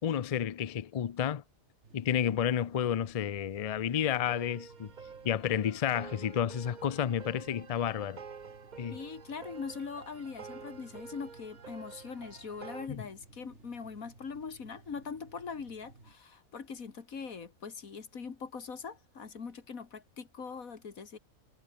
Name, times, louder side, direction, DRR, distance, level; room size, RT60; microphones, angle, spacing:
voice 1, 0.0-1.4 1.9-4.9 5.2-8.2 8.8-9.0 12.9-13.0, left 9 dB, 65° left, 0.3 m, -31 dB
sound 1, 1.8-16.2, right 3 dB, 55° right, 3.9 m, -58 dB
sound 2, 4.3-12.9, right 6 dB, 35° right, 0.9 m, -49 dB
voice 2, 8.9-21.2, left 5 dB, 85° left, 2.4 m, -42 dB
omnidirectional pair, 1.4 m